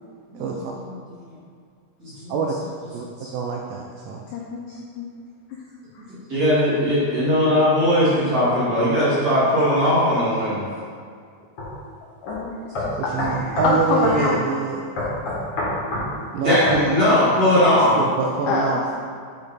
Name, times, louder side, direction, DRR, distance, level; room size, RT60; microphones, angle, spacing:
voice 1, 0.3-1.3 2.0-2.4 3.2-3.3 6.3-10.6 12.8-12.9 16.4-17.9, left 1 dB, 35° right, -11 dB, 1.7 m, -20 dB
voice 2, 3.3-4.2 13.1-14.8 16.3-17.0 17.9-18.8, right 5 dB, 80° right, 0 dB, 2.1 m, -25 dB
voice 3, 4.3-5.1 8.1-8.2 12.2-12.5 13.0-14.4 18.5-18.7, left 3 dB, 80° left, -2 dB, 1.9 m, -25 dB
sound 1, 11.6-11.7 12.3-12.4 12.7-13.7 14.0-14.2 15.0-16.1 16.7-16.8, left 2 dB, 50° left, 2.1 m, -26 dB
6.9 x 5.2 x 4.0 m, 2.2 s
omnidirectional pair, 4.4 m